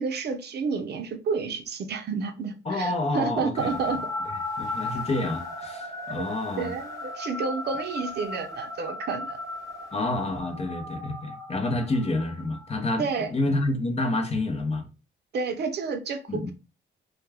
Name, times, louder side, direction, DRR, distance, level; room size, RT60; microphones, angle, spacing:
voice 1, 0.0-4.1 6.0-6.3 6.6-9.4 13.0-13.3 15.3-16.5, right 5 dB, 55° right, 0.6 m, -30 dB
voice 2, 2.7-3.8 4.6-6.7 9.9-13.1 13.3-14.9 16.3-16.5, left 2 dB, 30° left, 0.6 m, -28 dB
sound 1, 3.6-13.0, left 2 dB, 15° left, 1.0 m, -36 dB
2.3 x 2.2 x 3.3 m
cardioid pair, 90°, 20 cm